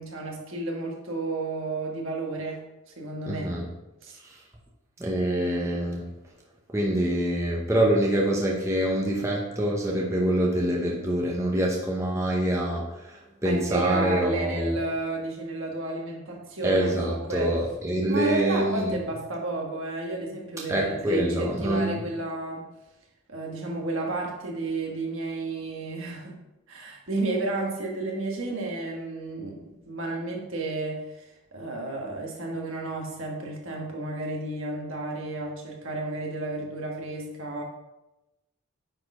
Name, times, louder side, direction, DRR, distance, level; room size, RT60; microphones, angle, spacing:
voice 1, 0.0-2.6 2.9-3.5 4.0-4.2 13.4-17.5 18.1-22.7 23.3-26.3 26.7-37.6, right 2 dB, 65° right, 0 dB, 1.5 m, -32 dB
voice 2, 3.3-3.7 4.2-4.4 5.0-6.1 6.7-14.7 16.6-18.9 20.7-22.0, right 1 dB, 15° right, -2 dB, 0.8 m, -25 dB
9.8 x 4.2 x 3.7 m, 0.98 s
head